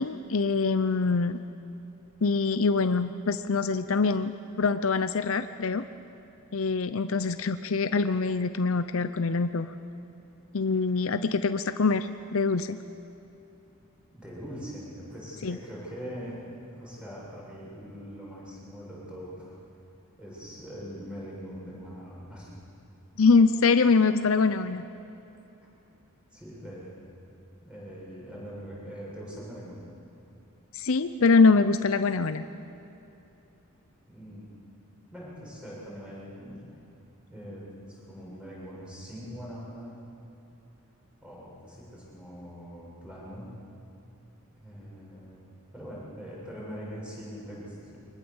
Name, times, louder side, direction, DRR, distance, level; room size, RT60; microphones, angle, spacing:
voice 1, 0.0-1.4 2.2-4.3 4.6-5.8 6.5-9.7 10.5-12.8 15.4-15.6 23.2-24.8 30.7-32.4, left 4 dB, 65° left, 10 dB, 0.6 m, -24 dB
voice 2, 14.1-19.6 20.2-22.6 26.3-27.0 27.6-29.8 34.1-34.5 35.1-36.6 37.3-40.0 41.2-43.5 44.5-45.4 45.7-48.0, equal, 5° right, -6 dB, 7.3 m, -42 dB
23.5 x 21.0 x 7.2 m, 2.9 s
head